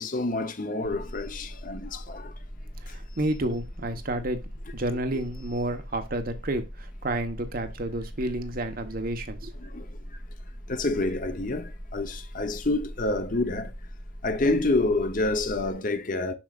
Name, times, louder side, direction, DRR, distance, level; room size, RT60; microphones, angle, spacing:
voice 1, 0.0-2.3 9.6-9.8 10.7-13.7 14.2-16.3, left 2 dB, 45° left, 0.9 m, -28 dB
sound 1, 0.8-15.7, equal, 10° left, 1.5 m, -41 dB
voice 2, 2.9-4.4 4.7-9.5, right 1 dB, 50° right, 1.2 m, -30 dB
7.2 x 6.2 x 2.5 m
head